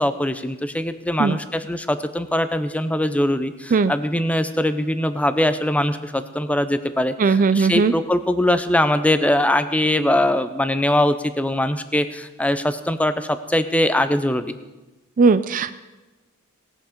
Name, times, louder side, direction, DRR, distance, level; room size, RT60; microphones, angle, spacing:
voice 1, 0.0-14.5, left 1 dB, 5° left, 10 dB, 0.6 m, -22 dB
voice 2, 7.2-7.9 15.2-15.8, right 4 dB, 40° right, 12 dB, 0.4 m, -18 dB
19.0 x 7.2 x 5.2 m, 1.1 s
head